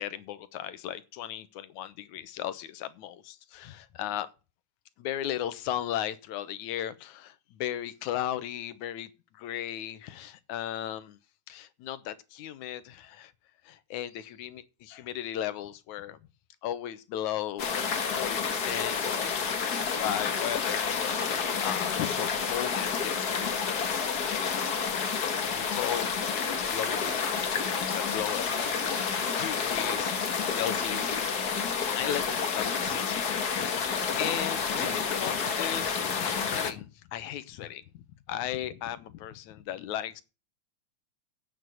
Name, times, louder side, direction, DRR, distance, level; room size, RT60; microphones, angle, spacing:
voice 1, 0.0-4.3 5.0-11.2 11.5-13.3 13.6-16.2 16.6-17.8 18.1-25.0 25.4-27.1 27.5-31.4 32.0-38.0 38.3-40.2, left 11 dB, 85° left, 2.4 m, -36 dB
sound 1, 17.6-36.7, left 6 dB, 45° left, 1.5 m, -29 dB
9.2 x 7.9 x 7.8 m
omnidirectional pair, 3.4 m